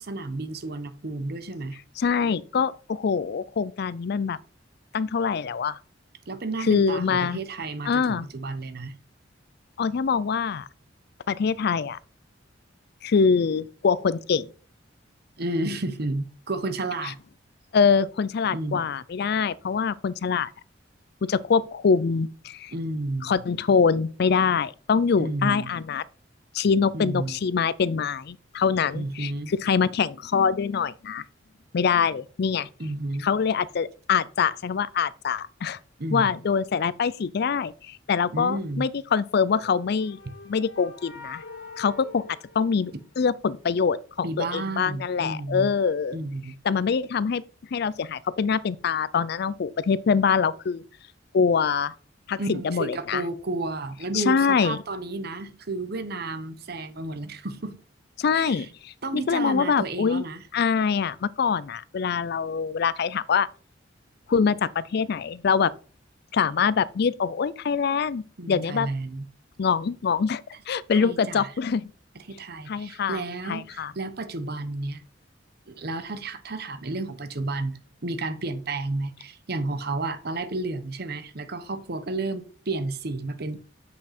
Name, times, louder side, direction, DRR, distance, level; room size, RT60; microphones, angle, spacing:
voice 1, 0.0-1.8 6.3-9.0 15.4-17.2 18.5-18.9 22.7-23.4 25.2-25.8 26.9-27.4 28.9-29.5 32.8-33.3 36.0-36.3 38.3-38.8 40.2-40.3 44.2-45.7 46.1-46.5 52.4-57.8 58.3-58.7 59.0-60.4 68.4-69.2 70.9-71.5 72.3-75.0 75.7-83.6, right 2 dB, 55° right, 1.0 m, -32 dB
voice 2, 2.0-4.4 4.9-5.8 6.7-7.4 7.9-8.3 9.8-10.7 11.3-12.0 13.0-14.5 17.7-20.5 21.2-22.7 23.2-26.0 26.5-31.2 31.7-32.7 33.2-35.8 36.1-40.2 40.5-41.4 41.8-42.2 42.6-46.2 46.6-47.4 47.7-50.8 51.3-51.9 52.3-53.2 54.1-54.8 58.2-60.2 60.5-63.5 64.3-65.7 66.3-68.9 69.6-70.4 70.7-71.9 72.7-73.2 73.5-73.9, left 6 dB, 60° left, 0.4 m, -24 dB
sound 1, 39.5-43.4, left 3 dB, 90° left, 1.9 m, -45 dB
7.7 x 6.0 x 4.3 m
head